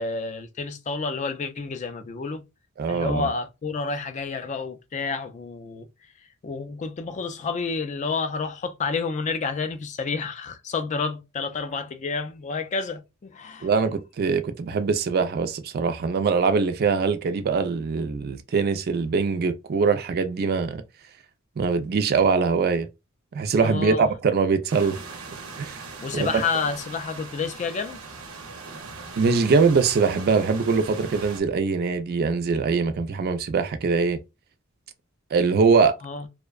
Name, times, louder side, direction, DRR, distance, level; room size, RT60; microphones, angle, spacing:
voice 1, 0.0-2.4 2.9-5.9 6.4-13.7 23.6-24.1 26.0-28.0 36.0-36.3, left 4 dB, 35° left, 0.3 m, -29 dB
voice 2, 2.8-3.3 13.6-20.8 21.6-22.9 23.3-25.0 25.6-25.8 26.1-26.3 29.2-34.2 35.3-36.0, right 5 dB, 45° right, 0.4 m, -22 dB
sound 1, 24.7-31.4, right 4 dB, 85° right, 0.7 m, -40 dB
2.6 x 2.1 x 2.3 m
head